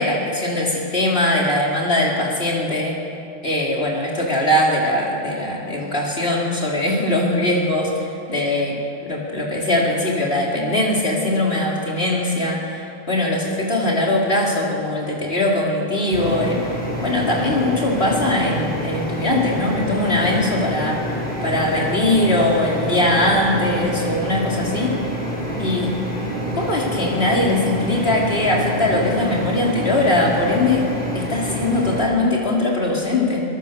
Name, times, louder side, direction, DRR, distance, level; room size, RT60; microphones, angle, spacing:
voice 1, 0.0-3.0 3.4-8.8 9.0-16.6 17.0-21.0 21.4-24.9 25.6-25.9 26.5-30.9 31.1-33.4, left 1 dB, 55° left, -3 dB, 4.3 m, -21 dB
sound 1, 16.1-32.0, equal, 5° left, 5.3 m, -27 dB
22.5 x 22.5 x 6.9 m, 2.7 s
omnidirectional pair, 1.2 m